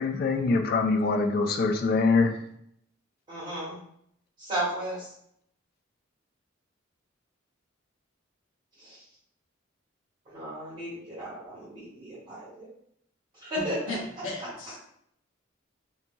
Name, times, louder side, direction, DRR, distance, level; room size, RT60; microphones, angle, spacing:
voice 1, 0.0-2.3, left 3 dB, 50° left, 5 dB, 0.3 m, -24 dB
voice 2, 3.3-3.8 4.4-5.1 8.8-9.0 10.2-12.7 13.3-14.7, right 1 dB, 25° right, -11 dB, 1.3 m, -35 dB
voice 3, 13.9-14.8, left 2 dB, 80° left, 0 dB, 0.7 m, -36 dB
2.7 x 2.7 x 2.2 m, 0.71 s
head